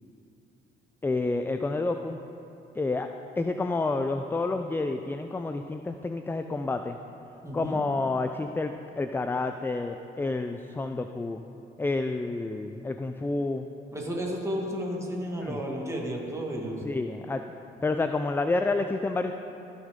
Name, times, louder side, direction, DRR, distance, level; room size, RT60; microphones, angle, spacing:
voice 1, 1.0-2.2 2.8-3.1 3.4-7.0 7.5-11.4 11.8-13.7 15.4-15.6 16.8-17.4 17.8-19.3, left 3 dB, 10° left, 7 dB, 0.3 m, -29 dB
voice 2, 7.4-7.8 13.9-16.8, equal, 15° right, -2 dB, 1.8 m, -32 dB
15.5 x 6.3 x 3.7 m, 2.8 s
cardioid pair, 90°, 20 cm